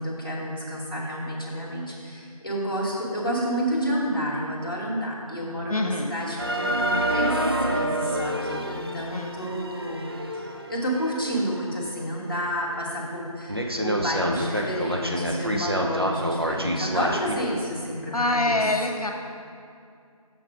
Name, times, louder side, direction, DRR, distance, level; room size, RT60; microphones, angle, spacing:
voice 1, 0.0-7.4 7.7-10.1 10.3-18.6, equal, 35° left, -5 dB, 1.4 m, -30 dB
voice 2, 5.7-6.1 9.1-9.4 18.1-19.1, left 2 dB, 75° left, 3 dB, 1.1 m, -25 dB
sound 1, 6.4-11.8 12.3-12.4 12.9-13.0 13.5-17.3, right 1 dB, 40° right, 0.5 m, -28 dB
7.0 x 5.8 x 5.9 m, 2.3 s
figure-of-eight pair, 180°, 19 cm